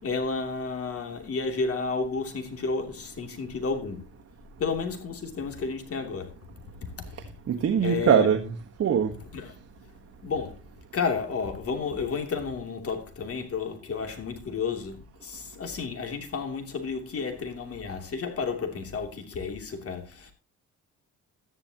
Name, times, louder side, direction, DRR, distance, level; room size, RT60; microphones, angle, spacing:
voice 1, 0.0-4.1 4.6-6.3 7.8-8.3 9.3-9.5 10.2-10.6 10.9-20.3, left 4 dB, 50° left, 2.9 m, -31 dB
voice 2, 7.5-9.1, right 8 dB, 55° right, 1.3 m, -22 dB
13.0 x 11.0 x 2.9 m
cardioid pair, 90°, 30 cm